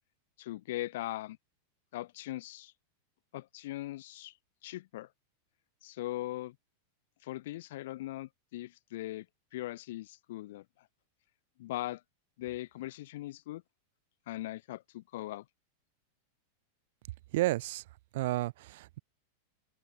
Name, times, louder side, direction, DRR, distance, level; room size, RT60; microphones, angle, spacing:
voice 1, 0.4-1.4 1.9-2.7 3.3-4.4 4.6-5.1 5.8-6.6 7.2-9.3 9.5-10.9 11.6-12.0 12.4-13.6 14.3-15.4, left 16 dB, 55° left, 1.8 m, -40 dB
voice 2, 17.3-17.8 18.1-19.0, right 17 dB, 55° right, 2.1 m, -31 dB
open air
figure-of-eight pair, 90°, 0 cm